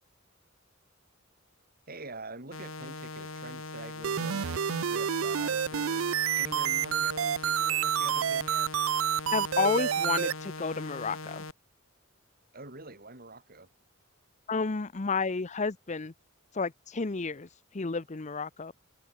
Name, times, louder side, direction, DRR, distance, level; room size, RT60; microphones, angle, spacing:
voice 1, 1.9-6.1 6.3-8.7 12.5-13.7, right 2 dB, 45° right, 7.1 m, -45 dB
sound 1, 2.5-11.5, left 3 dB, 85° left, 4.7 m, -41 dB
sound 2, 4.0-10.3, right 9 dB, 80° right, 0.5 m, -28 dB
voice 2, 9.3-11.4 14.5-16.1 16.5-17.5 17.7-18.7, left 4 dB, 35° left, 0.7 m, -31 dB
head